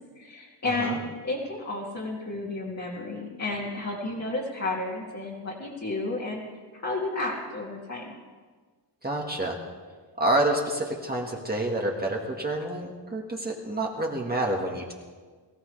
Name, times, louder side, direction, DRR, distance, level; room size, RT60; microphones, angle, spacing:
voice 1, 0.2-6.4 6.8-8.1, left 2 dB, 40° left, -5 dB, 2.3 m, -32 dB
voice 2, 9.0-9.6 10.2-14.9, right 1 dB, 20° right, -1 dB, 1.6 m, -28 dB
22.5 x 15.5 x 3.3 m, 1.5 s
wide cardioid pair, 140°, 43 cm